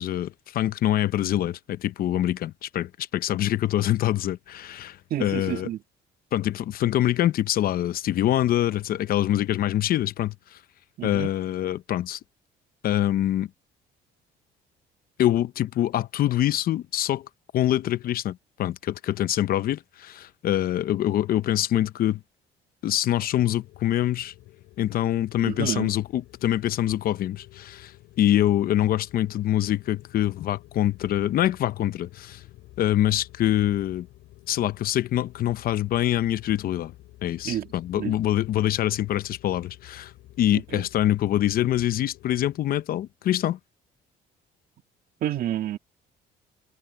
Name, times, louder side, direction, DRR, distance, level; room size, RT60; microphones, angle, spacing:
voice 1, 0.0-5.7 6.3-10.6 11.0-12.2 12.8-13.5 15.2-17.3 17.5-22.2 22.8-24.3 24.8-27.9 28.2-32.4 32.8-34.1 34.5-36.9 37.2-40.1 40.4-43.6, left 12 dB, 60° left, 0.8 m, -25 dB
voice 2, 5.1-5.8 11.0-11.3 25.4-25.9 37.4-37.7 38.0-38.1 40.5-40.8 45.2-45.8, right 12 dB, 60° right, 2.0 m, -29 dB
sound 1, 23.3-42.6, left 17 dB, 85° left, 7.9 m, -50 dB
cardioid pair, 110°, 17 cm